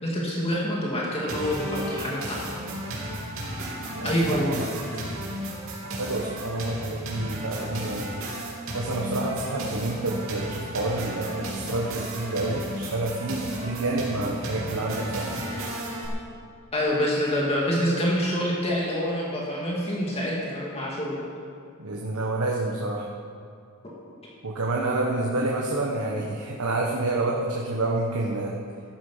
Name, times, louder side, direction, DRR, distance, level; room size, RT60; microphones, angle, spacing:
voice 1, 0.0-2.4 4.0-4.6 16.7-21.2 23.8-23.9, equal, 30° left, -4 dB, 2.3 m, -26 dB
sound 1, 1.3-16.1, right 1 dB, 65° right, 3.2 m, -34 dB
voice 2, 3.9-4.7 5.8-8.1 8.7-15.3 21.8-23.1 24.4-28.6, right 2 dB, 85° right, -2 dB, 1.3 m, -28 dB
14.5 x 12.0 x 5.7 m, 2.3 s
head